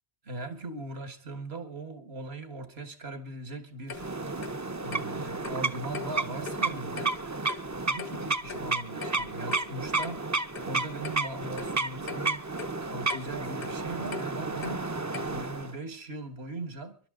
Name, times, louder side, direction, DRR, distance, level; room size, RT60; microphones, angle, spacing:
voice 1, 0.2-4.1 4.8-7.2 7.9-12.5 12.8-14.9 15.2-17.0, right 2 dB, 75° right, 1.8 m, -39 dB
Clock, 3.9-15.6, left 6 dB, 65° left, 1.0 m, -44 dB
sound 1, 3.9-15.8, right 3 dB, 20° right, 0.5 m, -32 dB
25.0 x 12.0 x 3.7 m
omnidirectional pair, 1.1 m